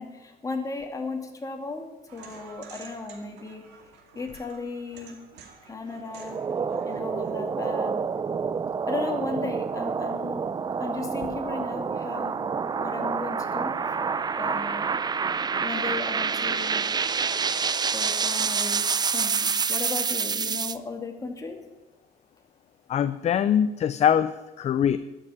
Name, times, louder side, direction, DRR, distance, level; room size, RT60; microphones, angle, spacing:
voice 1, 0.0-3.6 4.1-5.2 5.6-6.4 6.8-7.9 8.9-10.4 10.8-12.4 12.8-13.8 14.4-14.8 15.6-16.9 17.9-18.9 19.1-21.6, left 3 dB, 20° left, 3 dB, 2.4 m, -35 dB
sound 1, 2.1-7.7, right 6 dB, 80° right, 2.4 m, -50 dB
sound 2, 6.1-20.8, right 5 dB, 25° right, 0.5 m, -28 dB
voice 2, 22.9-25.0, left 9 dB, 40° left, 13 dB, 0.5 m, -23 dB
12.5 x 6.7 x 10.0 m, 1.1 s
cardioid pair, 110°, 17 cm